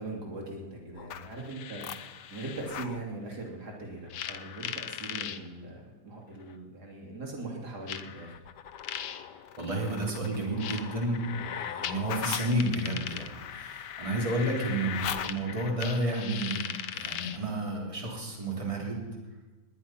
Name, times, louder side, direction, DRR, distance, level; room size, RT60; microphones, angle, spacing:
voice 1, 0.0-1.9 2.3-8.3, right 2 dB, 70° right, 0 dB, 3.2 m, -40 dB
sound 1, 1.0-3.0 4.1-5.4 6.5-6.6 7.9-17.5, left 9 dB, 90° left, 1.4 m, -38 dB
voice 2, 9.6-19.0, right 1 dB, 20° right, -2 dB, 3.3 m, -31 dB
20.0 x 10.0 x 5.6 m, 1.3 s
omnidirectional pair, 1.8 m